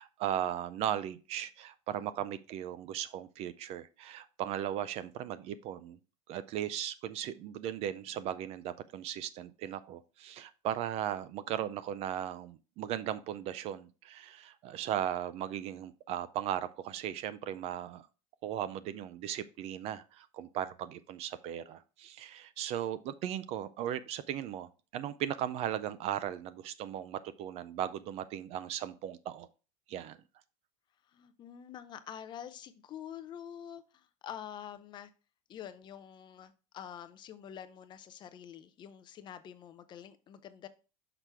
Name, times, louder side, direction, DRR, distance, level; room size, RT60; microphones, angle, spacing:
voice 1, 0.0-6.0 6.3-18.1 18.4-29.5 29.9-30.2, right 10 dB, 35° right, 0.4 m, -37 dB
voice 2, 31.0-35.1 35.5-40.7, left 9 dB, 25° left, 0.5 m, -47 dB
6.0 x 5.9 x 3.3 m
supercardioid pair, 150°, 17 cm